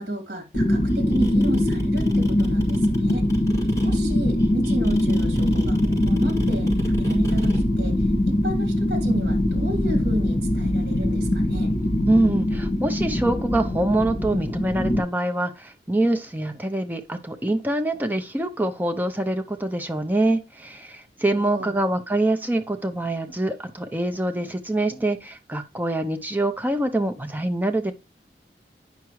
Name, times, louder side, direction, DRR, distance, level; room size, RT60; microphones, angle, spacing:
voice 1, 0.0-3.2 3.8-11.7 21.4-21.8, equal, 60° right, 2.8 m, -32 dB
sound 1, 0.5-15.0, left 1 dB, 50° left, 1.8 m, -22 dB
sound 2, 0.9-7.6, right 1 dB, 15° left, 4.8 m, -40 dB
voice 2, 12.0-27.9, right 1 dB, 10° right, 0.6 m, -25 dB
9.3 x 5.9 x 3.1 m
head